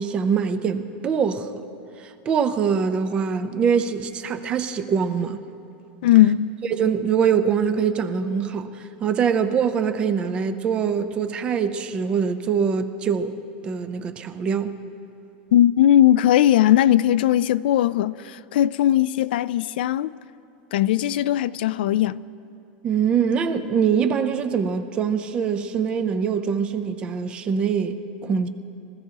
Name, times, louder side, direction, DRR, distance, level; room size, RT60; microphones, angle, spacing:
voice 1, 0.0-1.5 2.0-5.4 6.7-14.8 22.8-28.5, right 6 dB, 20° right, 0.5 m, -23 dB
voice 2, 6.0-6.5 15.5-20.1 20.7-22.2, left 12 dB, 80° left, 0.3 m, -18 dB
25.0 x 15.5 x 2.9 m
supercardioid pair, 175°, 5 cm